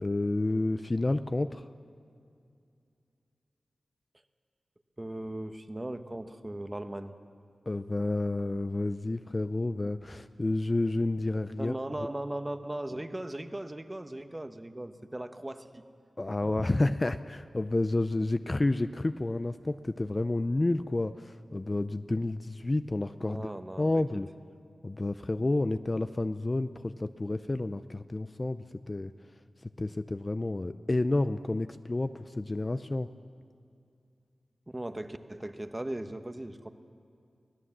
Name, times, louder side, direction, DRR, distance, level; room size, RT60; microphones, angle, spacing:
voice 1, 0.0-1.7 7.7-11.7 16.2-23.5 23.8-24.3 24.8-29.1 29.8-33.1, left 2 dB, 30° left, 11 dB, 0.5 m, -30 dB
voice 2, 5.0-7.1 11.6-15.8 23.2-24.0 34.7-36.7, right 1 dB, 20° right, 8 dB, 1.0 m, -38 dB
24.0 x 17.5 x 7.3 m, 2.4 s
wide cardioid pair, 95°, 0 cm